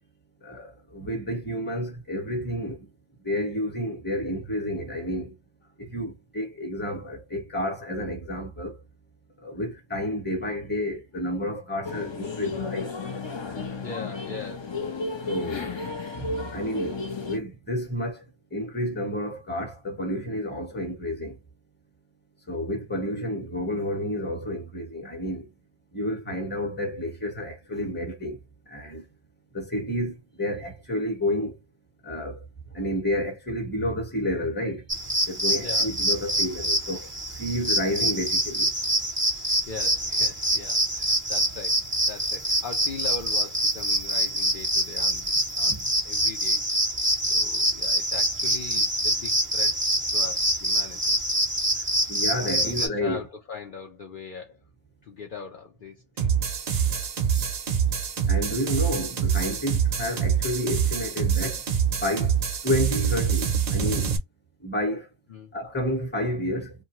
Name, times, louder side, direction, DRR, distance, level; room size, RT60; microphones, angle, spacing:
voice 1, 0.4-2.9 3.2-5.3 5.8-8.8 9.4-12.9 15.3-15.7 16.2-18.2 18.5-21.3 22.5-25.5 25.9-28.4 28.7-29.0 29.5-31.6 32.0-32.5 32.7-34.8 35.3-37.1 37.4-38.7 52.1-53.2 58.3-61.6 61.9-62.4 62.6-64.1 64.6-65.1 65.5-66.7, left 1 dB, 10° left, 0.8 m, -30 dB
sound 1, 11.8-17.4, left 3 dB, 45° left, 0.4 m, -33 dB
voice 2, 13.8-14.8 35.6-35.9 39.7-41.8 42.1-46.6 47.3-49.8 50.1-51.2 52.4-54.6 55.0-57.1 60.0-60.2 65.3-65.5, left 5 dB, 60° left, 0.7 m, -40 dB
sound 2, 34.9-52.9, right 1 dB, 15° right, 0.6 m, -25 dB
sound 3, 56.2-64.2, right 7 dB, 55° right, 0.6 m, -25 dB
2.5 x 2.2 x 2.9 m
omnidirectional pair, 1.0 m